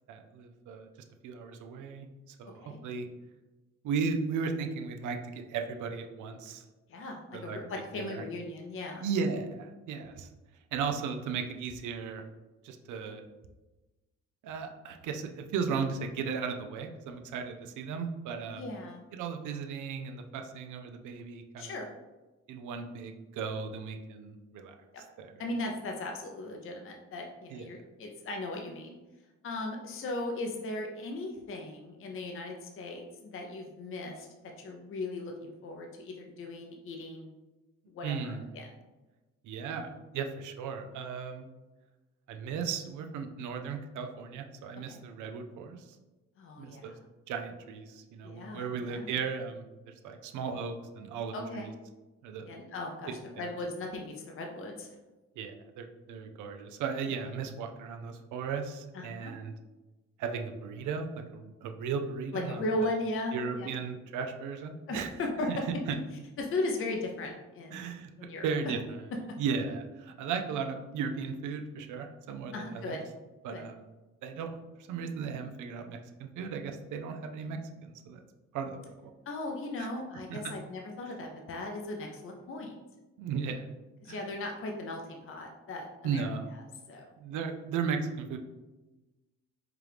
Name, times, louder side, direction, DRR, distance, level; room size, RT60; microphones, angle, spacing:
voice 1, 0.1-0.9 1.2-3.1 3.8-6.6 7.3-7.6 8.0-8.2 9.0-10.3 10.7-12.2 12.6-13.2 14.4-18.7 19.1-21.7 22.5-24.8 25.2-25.4 27.5-27.7 38.0-38.5 39.4-41.5 42.3-45.9 46.6-46.9 47.3-51.7 52.2-52.5 53.4-53.5 55.4-59.5 60.2-62.6 63.3-65.1 65.5-65.6 67.7-68.1 68.4-69.1 69.4-73.0 73.4-73.8 74.2-74.5 74.8-76.0 76.4-78.2 78.5-78.7 79.8-79.9 80.3-80.5 83.2-83.7 84.1-84.2 86.0-86.5 87.2-88.4, right 5 dB, 80° right, 6 dB, 0.5 m, -36 dB
voice 2, 6.9-9.0 18.5-19.0 21.6-21.9 25.4-29.0 29.4-34.3 34.6-37.3 37.9-38.7 44.9-45.0 46.4-47.0 48.2-49.1 51.3-51.7 52.5-54.9 58.9-59.3 62.3-63.7 64.9-65.6 66.4-67.9 68.2-68.5 72.5-73.0 73.5-73.6 79.3-82.8 84.0-86.3 86.5-86.6 86.9-87.0, left 2 dB, 45° left, 2 dB, 0.6 m, -37 dB
4.7 x 2.4 x 3.3 m, 1.1 s
cardioid pair, 90°, 30 cm